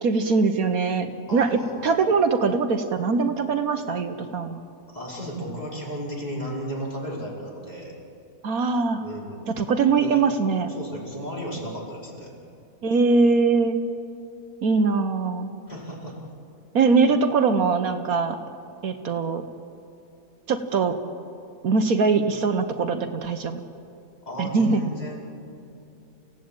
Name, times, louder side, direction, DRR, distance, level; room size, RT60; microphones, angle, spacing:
voice 1, 0.0-4.6 8.4-9.0 9.5-10.7 12.8-13.8 14.6-15.5 16.7-18.4 18.8-19.4 20.5-21.0 21.6-23.6 24.4-24.8, right 4 dB, 65° right, 8 dB, 1.5 m, -22 dB
voice 2, 1.3-2.0 4.9-7.9 9.0-9.4 9.8-10.2 10.7-12.3 15.7-16.2 24.2-25.2, equal, 25° left, -4 dB, 5.1 m, -34 dB
29.0 x 16.5 x 8.9 m, 2.8 s
omnidirectional pair, 1.6 m